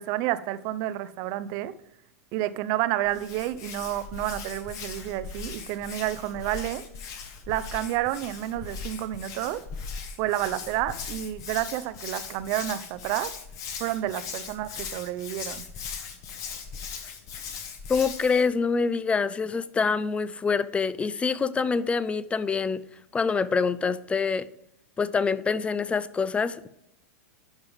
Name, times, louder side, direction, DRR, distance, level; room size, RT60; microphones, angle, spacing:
voice 1, 0.0-1.7 2.3-6.8 7.5-9.6 10.2-13.3 13.8-15.7, right 14 dB, 50° right, 15 dB, 0.6 m, -30 dB
Hands, 3.1-18.5, left 6 dB, 40° left, 1.4 m, -39 dB
voice 2, 17.9-22.8 23.1-24.5 25.0-26.7, left 5 dB, 15° left, 17 dB, 0.4 m, -25 dB
11.5 x 5.5 x 3.5 m, 0.80 s
hypercardioid pair, 105°, 8 cm